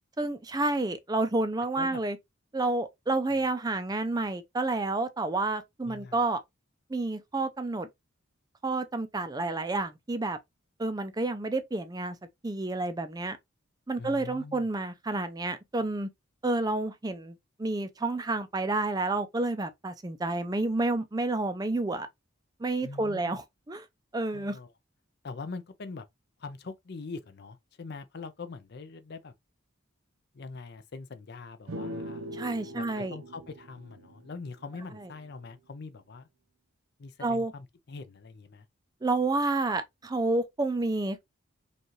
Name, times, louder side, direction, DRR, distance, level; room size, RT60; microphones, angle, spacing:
voice 1, 0.2-2.2 2.5-6.4 6.9-7.9 8.6-10.4 10.8-12.2 12.4-13.4 13.9-16.1 16.4-22.1 22.6-23.9 24.1-24.6 32.3-33.2 35.0-35.1 37.2-37.5 39.0-41.2, right 2 dB, 20° right, 0.4 m, -30 dB
voice 2, 5.9-6.2 14.0-14.7 22.8-23.4 24.3-24.7 25.2-26.1 26.4-29.3 30.3-32.3 32.7-36.3 37.0-38.7, left 4 dB, 50° left, 0.5 m, -43 dB
sound 1, 31.7-35.2, equal, 85° right, 0.7 m, -42 dB
5.2 x 2.4 x 3.0 m
head